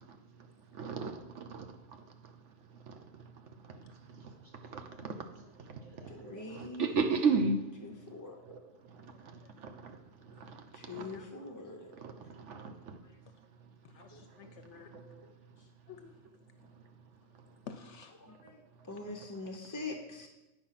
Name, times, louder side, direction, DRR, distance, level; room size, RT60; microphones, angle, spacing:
voice 1, 0.7-1.6 2.9-3.0 4.7-5.1 6.2-7.6 8.5-8.6 9.6-9.9 10.4-10.6 10.9-11.1 12.0-12.1 12.4-12.7 14.9-15.2, right 4 dB, 65° right, 6 dB, 1.1 m, -33 dB
voice 2, 4.0-6.1, left 1 dB, 50° right, -1 dB, 1.6 m, -62 dB
voice 3, 6.1-7.1 7.8-8.4 10.7-11.9 12.3-12.4 13.0-13.2 14.1-14.2 18.2-20.3, left 3 dB, 25° left, 2 dB, 0.4 m, -44 dB
voice 4, 10.9-11.3 13.8-14.9 15.9-16.1 17.7-18.1, left 7 dB, 70° left, 8 dB, 0.8 m, -50 dB
9.0 x 4.9 x 5.7 m, 1.0 s
omnidirectional pair, 1.4 m